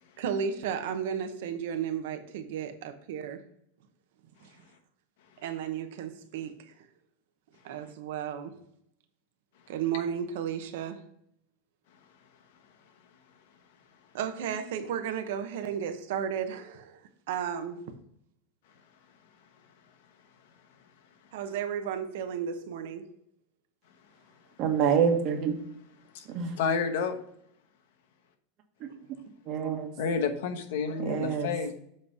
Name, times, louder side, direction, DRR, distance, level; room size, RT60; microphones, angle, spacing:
voice 1, 0.2-3.4 4.4-4.5 5.4-6.7 7.6-8.6 9.7-11.0 14.1-17.9 21.3-23.1, right 8 dB, 75° right, 0.9 m, -34 dB
voice 2, 24.6-25.5 26.2-26.6 28.8-29.2 29.4-29.9 31.0-31.5, right 7 dB, 45° right, 1.3 m, -27 dB
voice 3, 26.6-27.2 30.0-31.7, left 5 dB, 70° left, 1.0 m, -31 dB
7.6 x 3.2 x 5.5 m
supercardioid pair, 145°, 0 cm